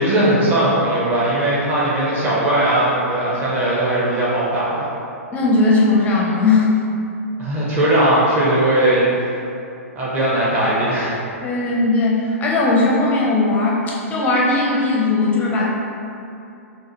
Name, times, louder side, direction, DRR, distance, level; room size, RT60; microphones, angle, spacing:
voice 1, 0.0-4.8 7.4-9.3 9.9-11.2, right 1 dB, 25° right, -8 dB, 0.9 m, -18 dB
voice 2, 5.3-6.7 11.4-15.7, left 3 dB, 20° left, -4 dB, 0.5 m, -18 dB
6.2 x 2.3 x 3.0 m, 2.6 s
figure-of-eight pair, 110°, 8 cm